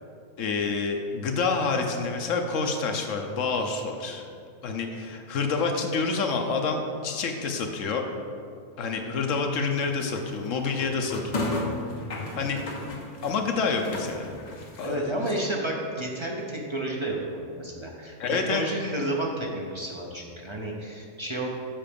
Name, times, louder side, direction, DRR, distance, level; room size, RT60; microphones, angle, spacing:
voice 1, 0.4-4.3 4.6-8.0 8.8-11.5 12.3-12.6 13.2-14.3 14.8-15.4 18.2-18.6, left 4 dB, 65° left, 3 dB, 1.1 m, -28 dB
sound 1, 9.8-15.0, left 2 dB, 40° left, 0.8 m, -34 dB
voice 2, 14.8-21.5, right 1 dB, 30° right, -2 dB, 0.6 m, -31 dB
7.5 x 4.7 x 5.2 m, 2.3 s
omnidirectional pair, 1.5 m